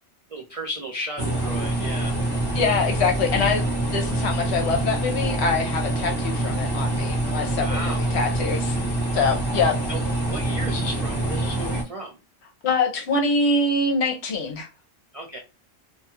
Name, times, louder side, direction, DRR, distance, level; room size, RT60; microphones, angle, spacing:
voice 1, 0.3-2.2 7.6-8.1 9.9-10.0 10.3-12.2 15.1-15.4, right 1 dB, 60° right, 0.3 m, -34 dB
sound 1, 1.2-11.8, right 1 dB, 20° left, 0.9 m, -25 dB
voice 2, 2.5-8.8 9.1-9.8 12.6-14.7, left 3 dB, 60° left, 0.9 m, -24 dB
2.6 x 2.3 x 2.7 m
omnidirectional pair, 1.3 m